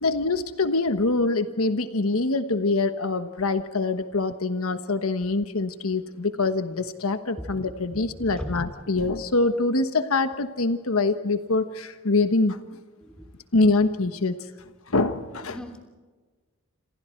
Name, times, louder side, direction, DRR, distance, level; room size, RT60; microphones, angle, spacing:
voice 1, 0.0-12.6 13.5-14.4 14.9-15.6, left 3 dB, 80° left, 9 dB, 1.2 m, -24 dB
voice 2, 7.9-8.6 13.0-13.3 15.5-15.8, equal, 5° left, 4 dB, 3.1 m, -37 dB
28.0 x 28.0 x 4.5 m, 1.3 s
head